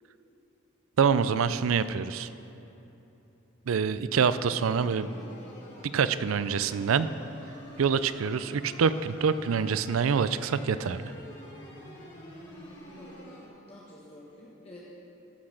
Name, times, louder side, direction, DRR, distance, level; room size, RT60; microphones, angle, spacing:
voice 1, 1.0-2.3 3.7-5.1 5.9-7.1 7.8-11.1, right 6 dB, 75° right, 14 dB, 0.4 m, -26 dB
sound 1, 4.1-13.5, equal, 60° left, 3.1 m, -47 dB
voice 2, 13.0-13.4 13.7-14.8, left 1 dB, 30° left, -6 dB, 1.4 m, -49 dB
14.5 x 6.0 x 6.4 m, 2.9 s
head